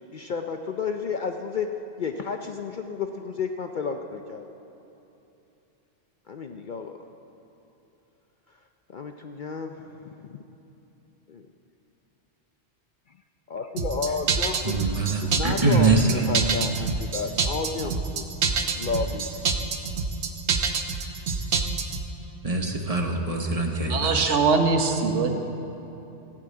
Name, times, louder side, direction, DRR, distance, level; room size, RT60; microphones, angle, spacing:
voice 1, 0.1-1.7 2.0-4.5 6.3-7.0 8.9-10.4 11.3-11.5 13.5-14.8 15.2-18.2 18.7-19.3, left 5 dB, 55° left, 5 dB, 0.6 m, -32 dB
sound 1, 13.8-22.0, right 5 dB, 65° right, 1.1 m, -27 dB
voice 2, 14.6-16.3 22.4-24.4, right 3 dB, 35° right, 2 dB, 1.1 m, -24 dB
voice 3, 23.9-25.3, right 4 dB, 85° right, 5 dB, 1.4 m, -22 dB
15.5 x 7.6 x 8.7 m, 3.0 s
omnidirectional pair, 1.2 m